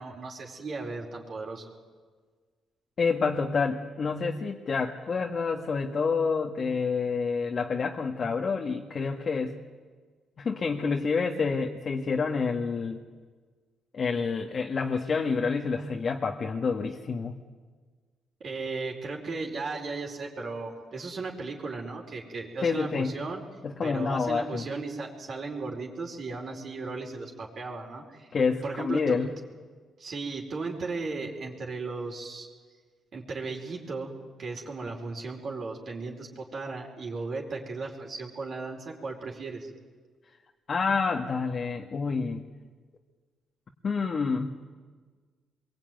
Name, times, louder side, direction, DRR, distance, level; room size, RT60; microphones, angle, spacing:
voice 1, 0.0-1.6 18.4-23.4 23.8-28.3 28.6-29.2 30.0-32.5 33.1-34.1 34.4-39.7, right 3 dB, 50° right, 0 dB, 4.7 m, -36 dB
voice 2, 3.0-9.5 10.4-13.0 13.9-17.3 22.6-23.1 23.6-24.7 28.3-29.3 40.7-42.4 43.8-44.5, left 5 dB, 45° left, 2 dB, 1.8 m, -28 dB
26.0 x 22.5 x 9.4 m, 1.5 s
cardioid pair, 90°, 0 cm